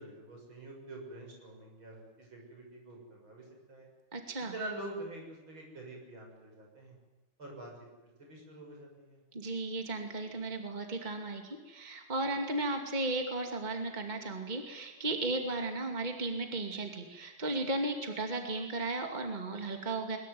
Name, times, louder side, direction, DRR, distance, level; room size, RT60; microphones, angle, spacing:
voice 1, 0.0-3.9 4.5-6.9 7.4-7.7 8.2-9.2, right 2 dB, 75° right, 0 dB, 7.5 m, -45 dB
voice 2, 4.1-4.5 9.3-20.2, right 2 dB, 20° right, 4 dB, 2.6 m, -35 dB
22.5 x 21.5 x 9.5 m, 1.2 s
omnidirectional pair, 2.2 m